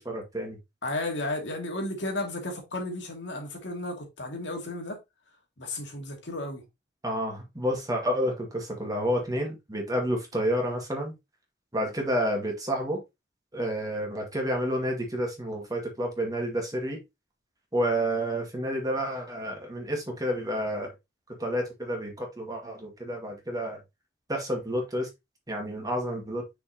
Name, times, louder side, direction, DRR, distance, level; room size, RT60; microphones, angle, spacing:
voice 1, 0.1-0.6 7.0-11.1 11.7-13.0 13.5-17.0 17.7-20.9 21.4-23.8 24.3-25.1 25.5-26.4, equal, 20° right, 1.9 m, -29 dB
voice 2, 0.8-5.0 5.6-6.6, left 2 dB, 70° left, 2.3 m, -33 dB
6.1 x 5.4 x 2.9 m
head